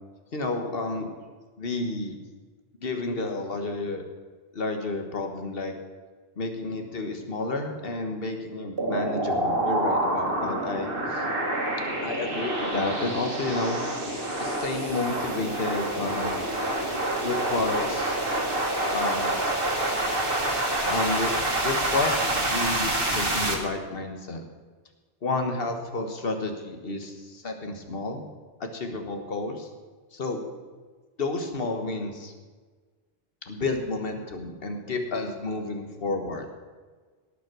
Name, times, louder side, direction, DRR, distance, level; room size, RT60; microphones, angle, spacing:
voice 1, 0.3-1.1 1.6-2.2 2.8-4.0 4.5-5.7 6.4-11.2 12.0-13.8 14.4-16.4 17.2-18.2 18.9-19.3 20.9-21.3 21.6-24.4 25.2-28.2 28.6-29.7 30.1-30.4 31.2-32.3 33.5-36.5, left 3 dB, 65° left, 5 dB, 1.6 m, -30 dB
sound 1, 8.8-23.5, right 1 dB, 60° right, 1.9 m, -27 dB
18.0 x 6.1 x 6.1 m, 1.4 s
omnidirectional pair, 1.0 m